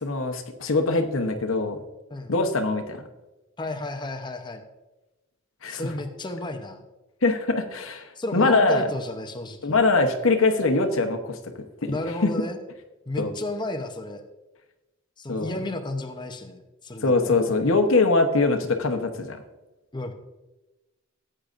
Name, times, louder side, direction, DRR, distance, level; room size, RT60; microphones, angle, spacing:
voice 1, 0.0-1.8 2.3-3.0 5.6-5.9 7.2-8.9 9.6-11.4 11.8-12.3 13.2-13.3 15.3-15.5 17.0-19.4, left 3 dB, 80° left, 6 dB, 1.0 m, -23 dB
voice 2, 3.6-4.6 5.7-6.8 8.2-9.8 11.9-12.6 13.1-14.2 15.2-17.4 19.9-20.1, left 1 dB, 20° left, 5 dB, 0.8 m, -33 dB
15.0 x 8.8 x 2.6 m, 1.1 s
head